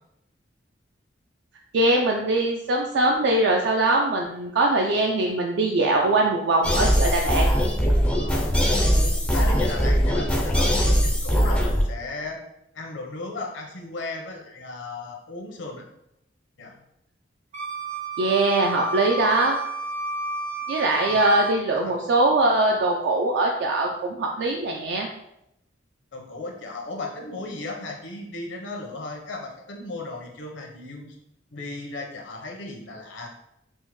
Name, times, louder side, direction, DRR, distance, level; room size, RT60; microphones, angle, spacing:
voice 1, 1.7-7.5 18.2-19.6 20.7-25.1, right 2 dB, 65° right, 1 dB, 0.4 m, -22 dB
sound 1, 6.6-11.8, equal, 5° left, 0.3 m, -21 dB
voice 2, 8.2-9.0 9.3-12.4 12.7-15.9 16.6-16.8 21.1-21.2 21.8-22.0 26.1-31.2 31.5-33.3, left 2 dB, 80° left, 1 dB, 0.7 m, -36 dB
Wind instrument woodwind instrument, 17.5-21.6, right 4 dB, 40° right, 0.7 m, -31 dB
4.4 x 2.1 x 3.0 m, 0.82 s
head